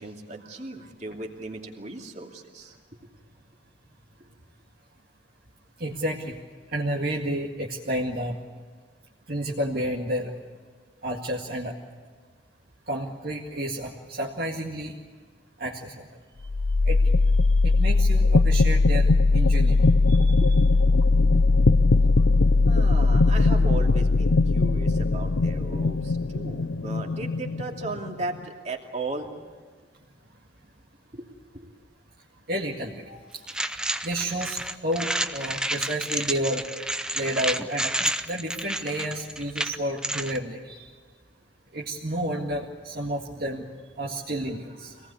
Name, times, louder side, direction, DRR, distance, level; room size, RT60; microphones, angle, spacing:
voice 1, 0.0-2.7 20.4-20.5 22.6-29.3 31.1-31.2 31.5-31.7, right 2 dB, 35° right, 1 dB, 2.6 m, -36 dB
voice 2, 5.8-6.4 6.7-8.3 9.3-10.3 11.0-11.7 12.9-14.9 15.6-15.9 16.9-17.0 17.6-19.1 19.3-19.8 20.1-20.4 32.5-33.2 34.0-34.6 34.8-36.7 37.1-37.9 38.3-40.9 41.7-43.7 44.0-44.9, right 1 dB, 50° right, -2 dB, 2.0 m, -30 dB
sound 1, 16.4-28.4, left 3 dB, 75° left, 0.7 m, -20 dB
sound 2, 33.5-40.4, right 1 dB, 5° right, 0.7 m, -30 dB
25.5 x 19.0 x 8.4 m, 1.5 s
head